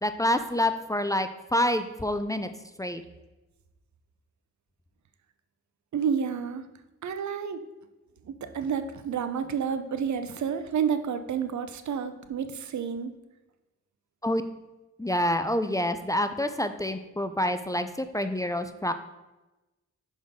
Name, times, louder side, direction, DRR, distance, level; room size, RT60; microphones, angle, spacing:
voice 1, 0.0-2.5 2.8-3.0 14.2-14.4 15.0-18.9, left 1 dB, 10° left, 9 dB, 0.4 m, -27 dB
voice 2, 5.9-6.7 7.0-7.6 8.2-13.1, right 7 dB, 75° right, 9 dB, 0.6 m, -30 dB
6.2 x 5.7 x 3.6 m, 1.1 s
cardioid pair, 75°, 29 cm